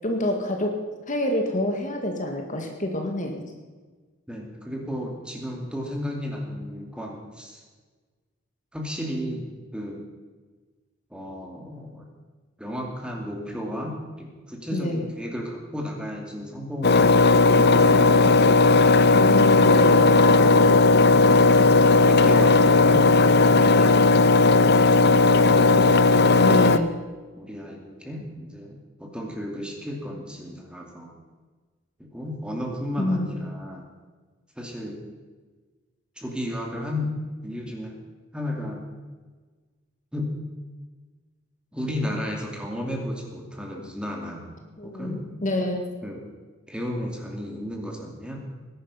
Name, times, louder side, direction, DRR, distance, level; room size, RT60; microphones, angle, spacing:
voice 1, 0.0-0.7 1.1-3.4 14.7-15.1 19.1-20.2 26.4-26.9 33.0-33.3 44.8-45.8, left 1 dB, 40° left, 3 dB, 1.8 m, -27 dB
voice 2, 4.3-7.6 8.7-10.0 11.1-12.1 12.6-17.1 20.0-20.8 22.0-23.1 27.4-31.1 32.1-33.9 34.6-35.1 36.2-37.2 37.4-38.0 38.3-38.9 40.1-40.3 41.7-44.4 44.8-45.3 46.0-46.2 46.7-48.4, left 1 dB, 5° right, 0 dB, 2.7 m, -33 dB
Engine, 16.8-26.8, left 3 dB, 55° left, 0.7 m, -16 dB
20.0 x 11.0 x 5.7 m, 1.4 s
head